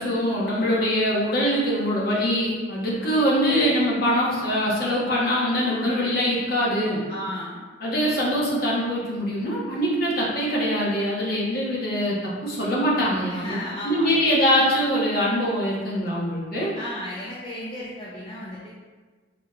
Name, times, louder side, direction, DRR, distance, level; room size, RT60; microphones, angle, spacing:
voice 1, 0.0-7.0 7.8-13.6 13.8-16.7, equal, 50° left, -5 dB, 1.1 m, -23 dB
voice 2, 7.1-7.6 13.3-14.3 16.7-18.7, left 1 dB, 25° left, -8 dB, 0.6 m, -34 dB
5.9 x 3.0 x 2.4 m, 1.4 s
head